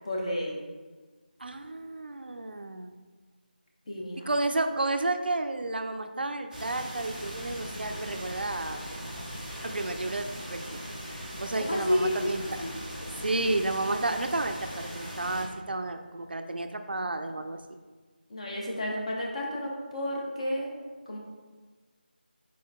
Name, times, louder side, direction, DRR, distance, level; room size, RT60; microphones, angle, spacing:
voice 1, 0.0-0.6 3.9-4.3 11.6-12.2 12.4-12.7 18.3-20.7 21.1-21.2, left 1 dB, 35° left, -2 dB, 0.7 m, -31 dB
voice 2, 1.4-2.9 4.3-8.8 9.6-10.8 11.4-12.4 13.2-17.6, right 2 dB, 70° right, 7 dB, 0.4 m, -31 dB
sound 1, 6.5-15.5, equal, ahead, 0.3 m, -39 dB
4.5 x 4.2 x 2.2 m, 1.4 s
figure-of-eight pair, 170°, 6 cm